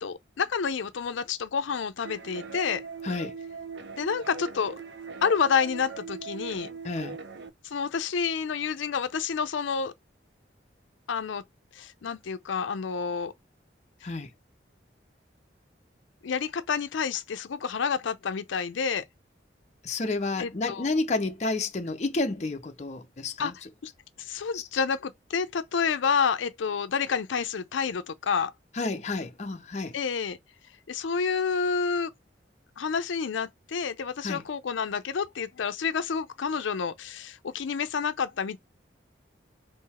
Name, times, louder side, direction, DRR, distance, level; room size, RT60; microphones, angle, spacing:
voice 1, 0.0-2.8 4.0-4.8 5.2-6.7 7.6-9.9 11.1-11.4 11.7-13.3 16.2-19.0 20.4-20.9 23.4-23.5 24.2-28.5 29.9-30.4 30.9-32.1 32.8-38.6, left 6 dB, 90° left, 0.5 m, -29 dB
sound 1, 2.0-7.5, right 5 dB, 70° right, 0.6 m, -40 dB
voice 2, 3.0-3.4 6.8-7.2 14.0-14.3 19.8-23.5 24.5-24.8 28.7-30.0 34.2-34.4, left 3 dB, 35° left, 0.5 m, -30 dB
3.8 x 2.6 x 4.2 m
head